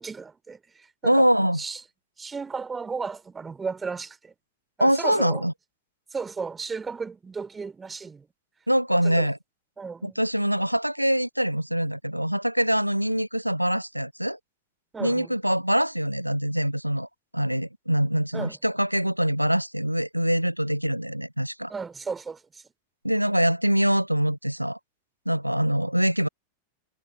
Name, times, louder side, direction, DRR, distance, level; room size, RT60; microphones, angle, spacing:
voice 1, 0.0-1.3 1.6-1.8 2.2-4.3 4.8-5.4 6.1-8.3 9.0-9.3 9.8-10.2 14.9-15.3 18.3-18.6 21.7-22.6, right 5 dB, 15° right, 3.8 m, -34 dB
voice 2, 1.0-1.6 4.8-5.5 8.7-9.4 10.0-14.4 15.0-17.1 17.3-21.7 23.0-24.8 25.3-26.3, equal, 90° right, 0.5 m, -24 dB
figure-of-eight pair, 90°, 0 cm